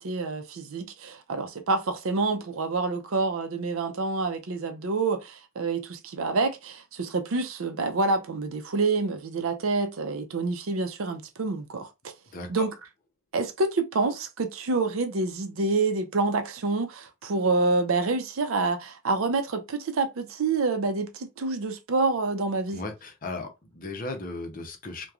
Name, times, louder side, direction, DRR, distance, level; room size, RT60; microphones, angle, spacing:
voice 1, 0.0-12.1 12.5-12.7 13.3-22.8, right 3 dB, 70° right, 0.5 m, -27 dB
voice 2, 22.7-25.1, left 2 dB, 40° left, 0.6 m, -36 dB
2.9 x 2.2 x 2.3 m
head